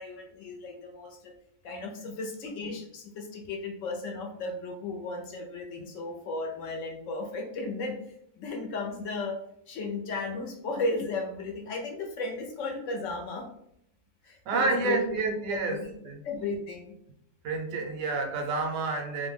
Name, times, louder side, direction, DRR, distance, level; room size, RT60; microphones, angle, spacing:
voice 1, 0.0-1.3 1.6-8.0 8.3-9.4 9.7-13.5 14.2-15.0 15.5-15.6 16.2-16.9, left 3 dB, 70° left, 1 dB, 0.9 m, -35 dB
voice 2, 14.5-16.2 17.4-19.3, right 3 dB, 80° right, 3 dB, 1.0 m, -29 dB
2.6 x 2.1 x 3.3 m, 0.73 s
omnidirectional pair, 1.4 m